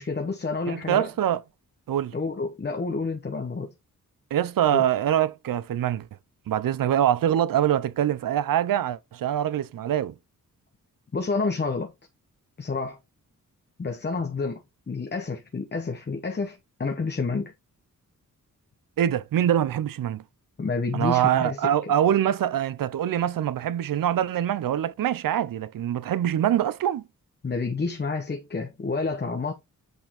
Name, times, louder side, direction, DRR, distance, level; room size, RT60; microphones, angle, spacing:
voice 1, 0.0-1.1 2.1-3.7 4.7-4.9 11.1-11.9 12.6-13.0 13.8-17.5 20.6-21.9 27.4-29.5, left 4 dB, 30° left, 0.9 m, -29 dB
voice 2, 0.7-1.4 1.9-2.2 4.3-6.1 6.5-10.1 19.0-20.2 20.9-27.0, right 10 dB, 75° right, 0.6 m, -24 dB
8.2 x 4.3 x 3.6 m
wide cardioid pair, 140°, 34 cm